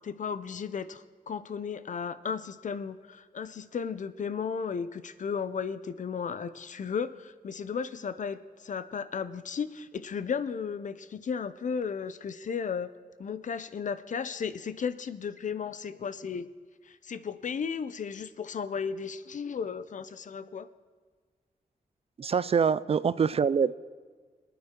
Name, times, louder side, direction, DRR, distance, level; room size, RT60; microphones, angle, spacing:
voice 1, 0.0-12.9 13.2-16.5 16.8-20.7, left 6 dB, 60° left, 13 dB, 0.6 m, -34 dB
voice 2, 22.2-23.8, right 6 dB, 45° right, 17 dB, 0.4 m, -25 dB
25.0 x 9.3 x 3.7 m, 1.5 s
wide cardioid pair, 130°, 15 cm